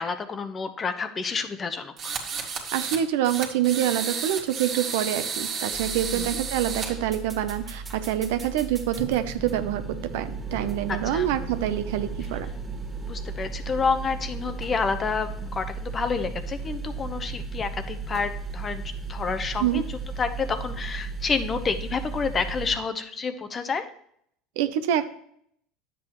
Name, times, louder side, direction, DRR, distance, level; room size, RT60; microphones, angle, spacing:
voice 1, 0.0-2.1 6.1-6.4 10.9-11.3 13.1-18.8 19.1-23.9, left 5 dB, 30° left, 10 dB, 0.8 m, -29 dB
sound 1, 2.0-3.0 3.2-6.9, right 6 dB, 45° right, 1.8 m, -32 dB
voice 2, 2.7-12.5 19.6-19.8 24.6-25.1, right 11 dB, 80° right, 11 dB, 0.7 m, -26 dB
sound 2, 5.7-22.8, right 4 dB, 15° right, 1.9 m, -35 dB
9.8 x 7.7 x 3.0 m, 0.68 s
supercardioid pair, 105°, 0 cm